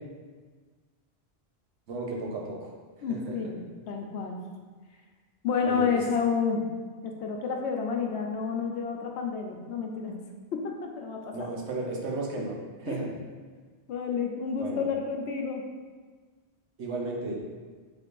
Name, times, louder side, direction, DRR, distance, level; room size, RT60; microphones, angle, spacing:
voice 1, 1.9-2.7 3.1-3.4 5.6-5.9 11.3-13.2 14.5-14.9 16.8-17.4, right 2 dB, 90° right, -1 dB, 1.1 m, -34 dB
voice 2, 3.0-4.4 5.4-6.6 7.0-10.2 10.5-11.5 12.9-13.1 13.9-15.6, left 6 dB, 80° left, 2 dB, 0.9 m, -30 dB
4.4 x 2.5 x 4.6 m, 1.4 s
omnidirectional pair, 1.1 m